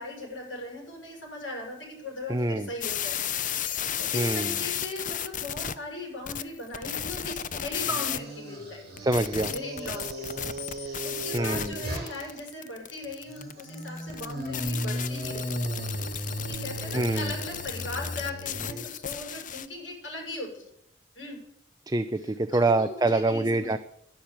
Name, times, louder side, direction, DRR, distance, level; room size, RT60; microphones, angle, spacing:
voice 1, 0.0-8.9 9.5-10.5 10.8-16.0 16.4-20.6 21.1-21.4 22.5-23.8, left 2 dB, 85° left, 0 dB, 6.7 m, -39 dB
voice 2, 2.3-2.7 4.1-4.5 9.0-9.5 11.3-11.8 16.9-17.3 21.9-23.8, right 2 dB, 20° right, 10 dB, 0.5 m, -25 dB
sound 1, 2.8-5.7 6.3-8.2 9.0-19.7, left 9 dB, 45° left, 0.7 m, -34 dB
sound 2, 7.6-12.4 13.3-18.8, right 1 dB, 55° right, 6.0 m, -36 dB
12.0 x 10.5 x 8.7 m, 0.76 s
head